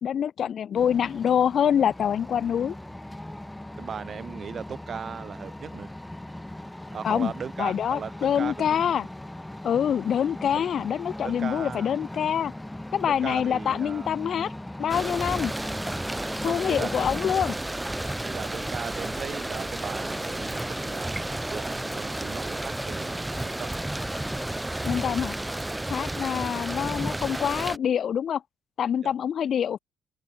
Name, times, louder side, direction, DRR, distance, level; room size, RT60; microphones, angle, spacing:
voice 1, 0.0-2.7 7.0-7.3 7.6-9.1 9.6-12.5 12.9-14.5 14.8-15.5 16.4-17.5 24.8-25.3 25.9-28.4 28.8-29.8, left 8 dB, 60° left, 0.5 m, -25 dB
sound 1, 0.7-17.3, left 1 dB, 10° left, 2.5 m, -39 dB
voice 2, 3.8-5.9 6.9-8.8 10.5-10.6 11.2-11.9 13.1-14.1 16.4-17.1 18.0-23.7 29.0-29.1, right 7 dB, 50° right, 3.4 m, -37 dB
sound 2, 14.9-27.8, right 1 dB, 10° right, 1.1 m, -32 dB
open air
cardioid pair, 90°, 0 cm